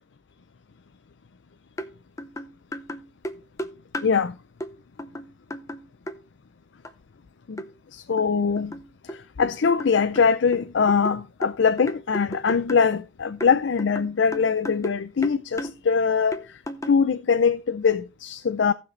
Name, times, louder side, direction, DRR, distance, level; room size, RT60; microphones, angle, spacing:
sound 1, 1.8-1.9 2.2-4.2 4.6-4.7 5.0-6.2 6.8-6.9 7.6-7.7 8.2-9.5 9.8-12.9 13.4-15.0 15.2-15.8 16.3-17.0, equal, 15° left, 0.7 m, -35 dB
voice 1, 4.0-4.3 7.5-7.6 7.9-8.7 9.0-16.6 16.9-18.7, left 5 dB, 70° left, 0.5 m, -22 dB
17.0 x 6.1 x 3.1 m
head